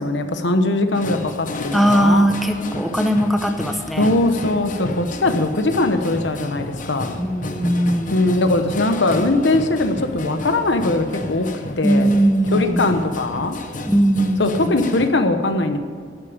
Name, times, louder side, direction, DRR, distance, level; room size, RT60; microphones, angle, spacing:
voice 1, 0.0-2.3 4.0-7.2 8.1-11.5 11.8-12.1 12.5-13.6 14.4-15.8, left 2 dB, 75° left, 8 dB, 1.1 m, -20 dB
sound 1, 0.9-15.1, left 2 dB, 45° left, 1.0 m, -32 dB
voice 2, 1.7-4.1 7.2-8.1 11.8-12.9 13.9-14.8, right 1 dB, ahead, 5 dB, 0.8 m, -19 dB
12.0 x 8.8 x 7.4 m, 2.1 s
head